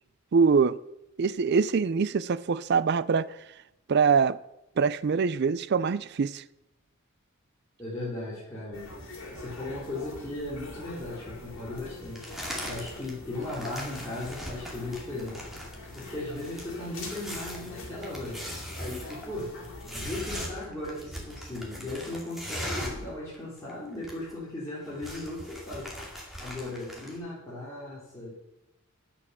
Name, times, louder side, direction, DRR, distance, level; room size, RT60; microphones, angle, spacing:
voice 1, 0.3-0.8 1.2-3.3 3.9-4.4 4.8-6.4, right 5 dB, 50° right, 0.4 m, -24 dB
voice 2, 7.8-8.9 9.3-12.3 12.6-15.4 15.9-18.4 18.8-19.5 19.9-25.9 26.4-28.3, left 2 dB, 15° left, 3.5 m, -37 dB
sound 1, 8.7-20.3, left 2 dB, 60° left, 3.2 m, -44 dB
sound 2, 12.1-13.1 13.4-23.1 23.3-23.4 23.7-24.4 24.7-27.2, equal, ahead, 2.4 m, -40 dB
9.9 x 8.4 x 6.7 m
head